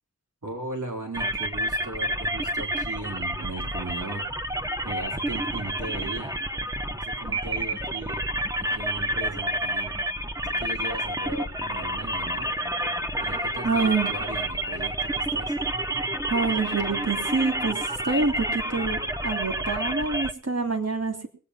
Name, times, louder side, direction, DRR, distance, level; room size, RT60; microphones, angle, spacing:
voice 1, 0.4-4.3 4.8-6.3 6.9-8.2 8.6-9.9 10.5-12.5 12.8-12.9 13.2-15.6, right 2 dB, 75° right, 0 dB, 4.3 m, -37 dB
sound 1, 1.1-20.3, right 1 dB, 10° right, 1.1 m, -29 dB
voice 2, 13.6-14.1 16.3-21.3, right 4 dB, 55° right, 4 dB, 3.1 m, -26 dB
21.0 x 8.5 x 5.9 m, 0.41 s
wide cardioid pair, 45°, 30 cm